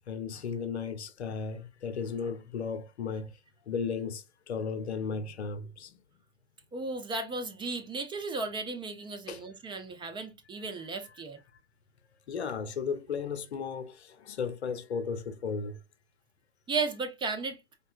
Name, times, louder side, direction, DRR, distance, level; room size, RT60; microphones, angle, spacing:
voice 1, 0.1-3.3 3.7-6.0 9.3-9.4 11.0-11.1 12.3-15.8, left 5 dB, 80° left, 0.7 m, -35 dB
voice 2, 6.7-11.4 16.7-17.6, right 3 dB, 15° right, 0.5 m, -35 dB
4.5 x 2.8 x 2.5 m
hypercardioid pair, 100°, 32 cm